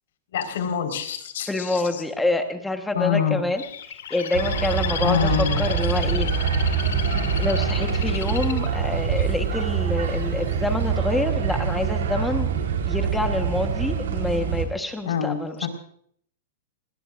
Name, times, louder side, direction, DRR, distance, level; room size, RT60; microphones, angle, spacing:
voice 1, 0.3-2.0 2.9-3.4 5.0-5.6 15.0-15.7, left 9 dB, 65° left, 6 dB, 4.4 m, -26 dB
voice 2, 1.5-3.6 3.9-6.3 6.6-6.8 7.4-12.5 12.9-15.7, left 2 dB, 5° left, 5 dB, 1.2 m, -27 dB
Bird, 3.6-9.6 10.2-10.6, left 9 dB, 80° left, 2.5 m, -34 dB
sound 1, 4.3-14.6, right 6 dB, 75° right, 3.9 m, -25 dB
28.5 x 19.5 x 2.5 m, 0.62 s
supercardioid pair, 175°, 0 cm